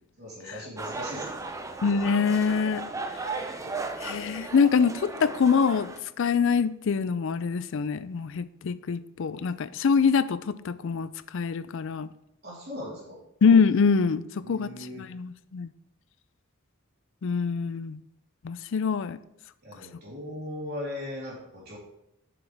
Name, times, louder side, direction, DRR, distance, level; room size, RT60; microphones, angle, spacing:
voice 1, 0.2-1.6 12.4-13.2 14.4-15.0 19.6-21.8, left 1 dB, 50° right, -6 dB, 3.4 m, -38 dB
sound 1, 0.8-6.0, right 3 dB, 15° right, 0.6 m, -36 dB
voice 2, 1.8-2.8 4.0-5.9 6.2-12.1 13.4-14.2 14.5-14.7 15.1-15.7 17.2-18.0 18.4-19.2, left 5 dB, 65° left, 15 dB, 0.4 m, -24 dB
10.0 x 5.9 x 3.4 m, 0.83 s
head